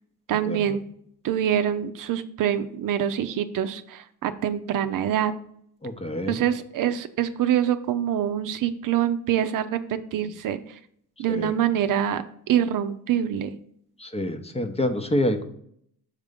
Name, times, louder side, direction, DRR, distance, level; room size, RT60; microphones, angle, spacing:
voice 1, 0.3-0.8 1.2-5.3 6.3-10.6 11.2-13.6, right 10 dB, 60° right, 10 dB, 0.6 m, -25 dB
voice 2, 5.8-6.4 11.3-11.5 14.0-15.4, left 1 dB, 15° left, 8 dB, 0.8 m, -27 dB
6.5 x 3.5 x 5.1 m, 0.68 s
cardioid pair, 85°, 36 cm